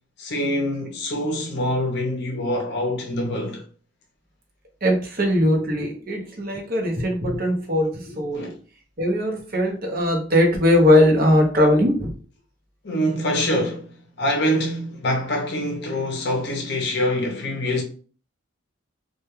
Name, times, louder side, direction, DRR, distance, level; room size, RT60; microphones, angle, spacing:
voice 1, 0.2-3.6 8.3-8.5 12.8-17.8, left 1 dB, 55° left, 0.6 m, -25 dB
voice 2, 4.8-8.5 9.0-12.1, left 1 dB, 45° right, 0.7 m, -20 dB
2.2 x 2.2 x 3.0 m
head